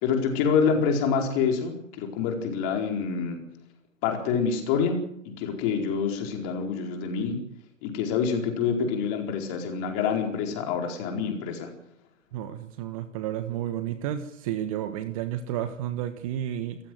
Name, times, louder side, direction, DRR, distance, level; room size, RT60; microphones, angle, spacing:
voice 1, 0.0-3.4 4.0-7.4 7.8-11.7, left 6 dB, 25° left, 3 dB, 4.6 m, -27 dB
voice 2, 12.3-16.8, right 11 dB, 25° right, 10 dB, 1.4 m, -31 dB
28.5 x 15.0 x 7.8 m, 0.74 s
figure-of-eight pair, 130°, 40 cm